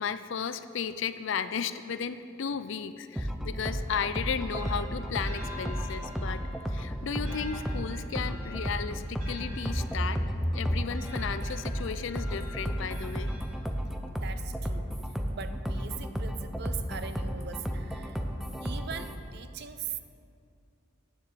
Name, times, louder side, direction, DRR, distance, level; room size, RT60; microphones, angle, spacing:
voice 1, 0.0-10.2 10.5-13.3, left 6 dB, 60° left, 12 dB, 0.4 m, -34 dB
sound 1, 3.2-19.2, equal, ahead, 0.5 m, -33 dB
sound 2, 4.1-14.0, left 1 dB, 70° right, 2.8 m, -47 dB
voice 2, 14.2-14.9 15.3-18.2 18.6-20.0, right 7 dB, 50° right, 10 dB, 0.5 m, -41 dB
9.3 x 7.1 x 6.8 m, 2.4 s
head